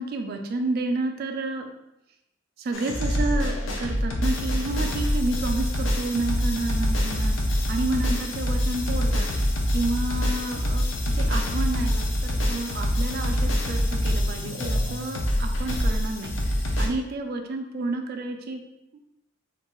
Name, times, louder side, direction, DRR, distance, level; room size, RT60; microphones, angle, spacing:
voice 1, 0.0-1.7 2.6-7.4 7.7-10.9 11.2-16.4 16.8-18.6, right 2 dB, 50° right, 4 dB, 0.3 m, -30 dB
sound 1, 2.7-16.9, equal, 80° left, 0.5 m, -25 dB
3.0 x 2.5 x 2.2 m, 0.88 s
head